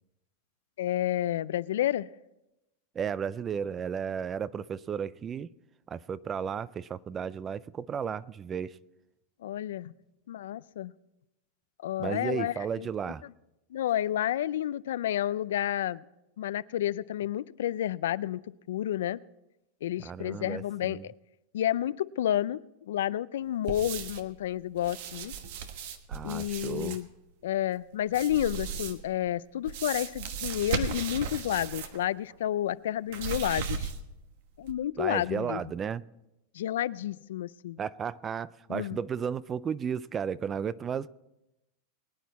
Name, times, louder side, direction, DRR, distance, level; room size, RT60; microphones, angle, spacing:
voice 1, 0.8-2.1 9.4-9.9 10.3-10.9 11.8-12.9 13.7-16.0 16.4-18.4 18.7-19.2 19.8-21.1 21.5-25.3 26.2-27.1 27.4-33.9 34.6-35.6 36.5-37.8 38.7-39.0, left 12 dB, 85° left, 0.4 m, -30 dB
voice 2, 3.0-5.5 5.9-8.8 12.0-13.2 20.0-21.0 26.1-27.0 35.0-36.0 37.8-41.1, right 7 dB, 25° right, 0.3 m, -34 dB
sound 1, 23.7-24.3 24.8-27.0 28.1-29.1 29.6-32.0 32.3-32.4 33.1-34.2 34.6-34.7, right 7 dB, 65° right, 1.3 m, -36 dB
22.0 x 9.4 x 4.1 m
supercardioid pair, 135°, 0 cm